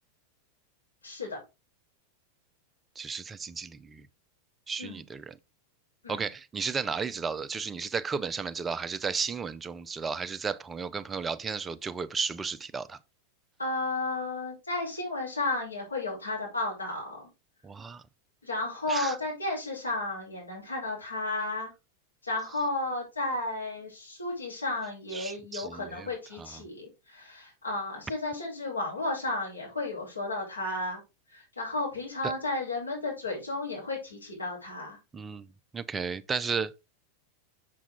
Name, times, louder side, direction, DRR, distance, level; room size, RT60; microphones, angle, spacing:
voice 1, 1.0-1.4 4.8-5.0 6.0-6.3 13.6-17.3 18.4-21.7 22.2-31.0 31.3-35.0, left 2 dB, 80° left, 4.9 m, -33 dB
voice 2, 3.0-4.0 4.7-5.3 6.1-13.0 17.6-18.0 18.9-19.2 25.1-26.1 26.4-26.5 32.2-32.3 35.1-35.5 35.7-36.7, right 5 dB, 15° right, 0.6 m, -33 dB
7.3 x 6.9 x 3.8 m
figure-of-eight pair, 90°, 0 cm